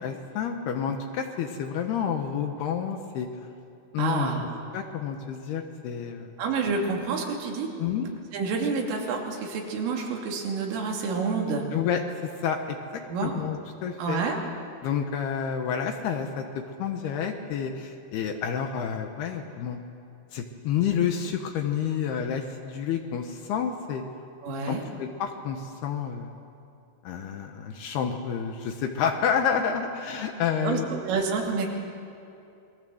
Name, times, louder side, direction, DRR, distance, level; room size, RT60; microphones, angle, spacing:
voice 1, 0.0-3.3 3.9-4.3 4.7-6.4 7.8-8.1 11.7-14.2 14.8-19.8 20.3-24.0 24.7-26.4 27.0-30.9, left 7 dB, 70° left, 5 dB, 2.7 m, -29 dB
voice 2, 4.0-4.4 6.4-7.7 8.3-11.7 13.1-13.3 14.0-14.4 24.4-24.9 30.6-30.8 31.1-31.7, right 4 dB, 85° right, 0 dB, 5.3 m, -28 dB
27.5 x 22.0 x 7.9 m, 2.6 s
omnidirectional pair, 5.6 m